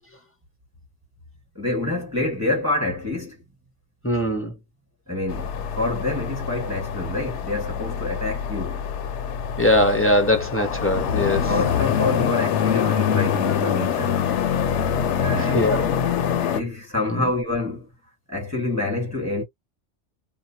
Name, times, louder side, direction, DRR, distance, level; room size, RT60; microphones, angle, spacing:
voice 1, 1.5-3.4 5.1-8.8 11.5-14.2 15.2-15.9 16.5-17.9 18.3-19.4, left 2 dB, 15° right, 1.3 m, -27 dB
voice 2, 4.0-4.5 9.6-11.4 15.4-15.9 17.1-17.3, left 1 dB, 15° left, 0.5 m, -21 dB
sound 1, 5.3-16.6, left 8 dB, 75° left, 0.9 m, -25 dB
2.4 x 2.1 x 2.7 m
omnidirectional pair, 1.2 m